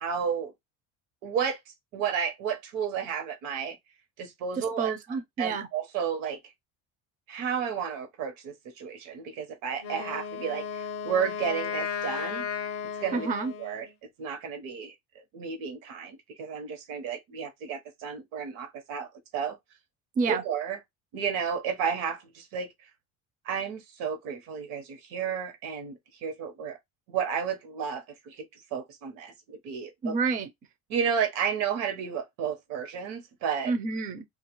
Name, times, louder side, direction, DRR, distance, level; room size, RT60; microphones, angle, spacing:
voice 1, 0.0-0.5 1.2-3.8 4.2-5.0 5.4-6.4 7.3-12.5 12.9-13.3 13.6-13.9 14.2-14.9 15.3-19.6 20.3-20.8 21.1-22.7 23.4-26.8 27.1-30.1 30.9-33.7, right 7 dB, 80° right, 0.9 m, -32 dB
voice 2, 4.6-5.7 13.1-13.5 20.2-20.4 30.0-30.5 33.6-34.2, right 4 dB, 25° right, 0.4 m, -29 dB
Wind instrument woodwind instrument, 9.8-13.9, left 7 dB, 45° left, 0.6 m, -35 dB
2.3 x 2.3 x 2.9 m
cardioid pair, 145°, 33 cm